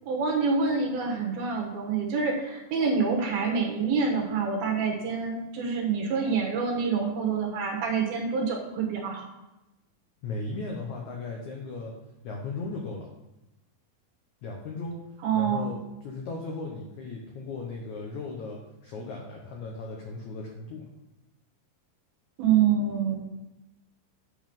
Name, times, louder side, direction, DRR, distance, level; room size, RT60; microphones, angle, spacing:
voice 1, 0.1-9.2 15.2-15.8 22.4-23.2, right 5 dB, 70° right, 0 dB, 2.9 m, -26 dB
voice 2, 10.2-11.9 12.2-13.1 14.4-15.0 15.3-20.9, left 3 dB, 85° left, 0 dB, 1.6 m, -36 dB
8.7 x 5.2 x 5.4 m, 0.97 s
omnidirectional pair, 4.9 m